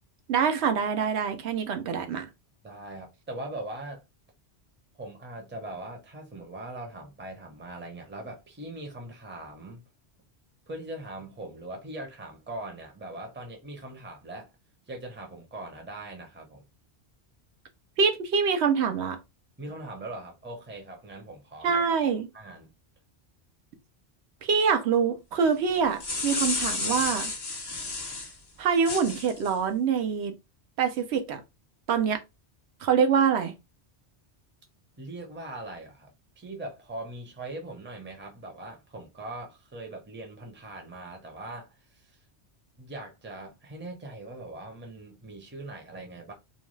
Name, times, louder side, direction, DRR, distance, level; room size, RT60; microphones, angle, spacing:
voice 1, 0.3-2.3 18.0-19.2 21.6-22.3 24.4-27.3 28.6-30.3 30.8-31.4 31.9-32.2 32.8-33.5, right 6 dB, 80° right, 0.8 m, -25 dB
voice 2, 2.6-4.0 5.0-9.8 10.7-14.5 14.9-16.6 19.6-21.8 22.3-22.7 35.0-36.1 36.4-42.2 42.8-46.3, right 2 dB, 15° right, 0.6 m, -41 dB
sound 1, 25.7-28.3 28.8-29.5, left 3 dB, 30° left, 0.5 m, -31 dB
2.6 x 2.2 x 3.0 m
omnidirectional pair, 1.1 m